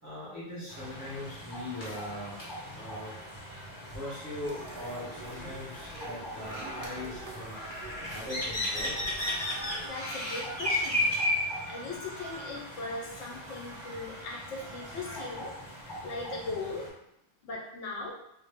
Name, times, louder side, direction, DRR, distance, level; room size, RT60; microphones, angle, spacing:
voice 1, 0.0-2.4 2.7-3.1 3.9-7.6 8.1-8.9, left 1 dB, 15° right, -9 dB, 0.7 m, -40 dB
sound 1, 0.7-16.9, left 1 dB, 30° left, 0.6 m, -36 dB
sound 2, 4.4-9.9, right 1 dB, 65° right, 0.7 m, -45 dB
sound 3, 8.9-10.6 11.3-12.7 13.1-15.4, right 2 dB, 90° right, 1.0 m, -48 dB
voice 2, 9.8-11.1 11.7-15.6 15.8-16.9 17.4-18.1, left 3 dB, 75° left, -2 dB, 0.9 m, -39 dB
2.1 x 2.0 x 3.3 m, 0.79 s
omnidirectional pair, 1.3 m